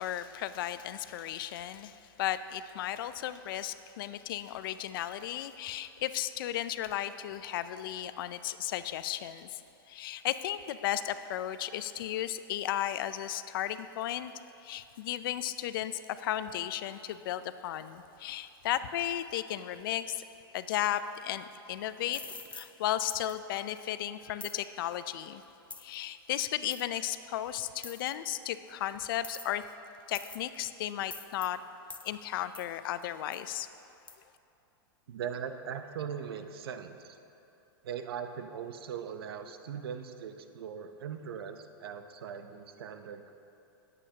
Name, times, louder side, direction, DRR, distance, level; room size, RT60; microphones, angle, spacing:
voice 1, 0.0-9.6 9.9-14.3 14.6-20.2 20.5-22.2 22.5-25.4 25.8-29.6 30.1-31.6 32.0-33.7, left 12 dB, 65° left, 12 dB, 0.5 m, -35 dB
sound 1, 22.1-22.7 23.1-23.3 24.4-24.6 25.7-25.9 26.7-26.8 27.8-28.1 29.2-29.6 30.1-30.5 31.1-31.5 31.9-32.1 32.5-32.7 33.3-33.4 34.1-34.2, left 4 dB, 10° left, 0.4 m, -45 dB
voice 2, 35.1-37.2 37.8-43.3, right 7 dB, 75° right, 8 dB, 0.8 m, -40 dB
18.0 x 8.3 x 2.9 m, 2.8 s
hypercardioid pair, 125°, 13 cm